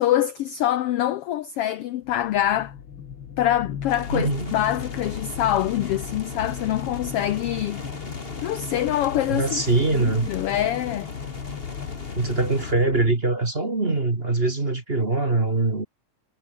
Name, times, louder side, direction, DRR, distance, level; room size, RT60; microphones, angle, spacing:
voice 1, 0.0-2.7 3.4-7.8 8.4-9.6 9.9-11.1, left 12 dB, 75° left, 1.3 m, -25 dB
sound 1, 2.0-13.2, left 8 dB, 50° left, 2.3 m, -36 dB
sound 2, 3.9-12.7, left 3 dB, 20° left, 2.7 m, -39 dB
voice 2, 4.1-4.5 9.3-10.3 12.2-15.9, right 3 dB, 20° right, 2.1 m, -23 dB
omnidirectional pair, 3.5 m